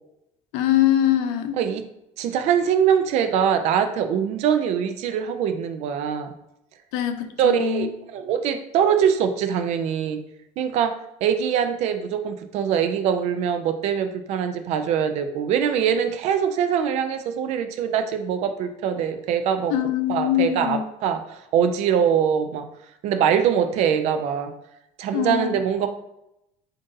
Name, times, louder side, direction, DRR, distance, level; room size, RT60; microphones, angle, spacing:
voice 1, 0.5-1.6 6.9-7.9 19.7-20.8 25.1-25.5, left 12 dB, 80° left, 8 dB, 0.6 m, -22 dB
voice 2, 2.2-6.3 7.4-10.2 10.6-11.0 11.2-19.7 20.1-22.7 23.0-24.5 25.0-25.9, right 8 dB, 50° right, 8 dB, 0.4 m, -23 dB
7.6 x 2.6 x 2.6 m, 0.83 s
cardioid pair, 155°, 14 cm